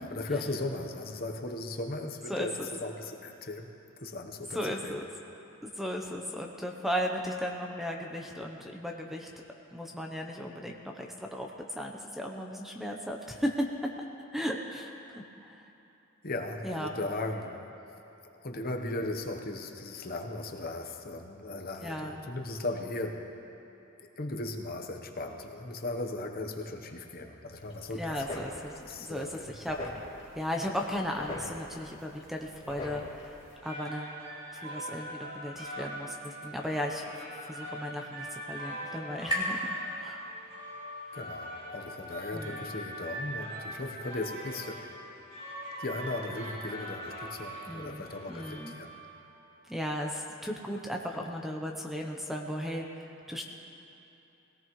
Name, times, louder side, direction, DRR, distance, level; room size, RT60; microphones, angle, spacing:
voice 1, 0.0-3.7 4.0-5.0 16.2-17.8 18.4-23.2 24.0-28.4 28.8-29.6 41.1-44.9 45.8-48.9, left 2 dB, 45° left, 4 dB, 1.0 m, -37 dB
voice 2, 2.3-2.7 4.5-5.0 5.6-9.3 9.7-13.7 14.3-15.0 15.4-15.7 16.6-16.9 21.8-22.2 27.9-28.7 29.0-29.8 30.3-34.1 34.5-37.0 37.5-39.7 40.0-40.2 42.3-42.6 47.7-48.0 48.3-48.7 49.7-53.4, equal, ahead, 1 dB, 0.7 m, -36 dB
sound 1, 27.6-33.6, left 2 dB, 25° left, 3.3 m, -44 dB
sound 2, 33.4-49.3, right 1 dB, 45° right, 3.0 m, -42 dB
sound 3, 37.0-40.7, equal, 20° right, 2.7 m, -38 dB
21.0 x 17.5 x 3.1 m, 2.9 s
head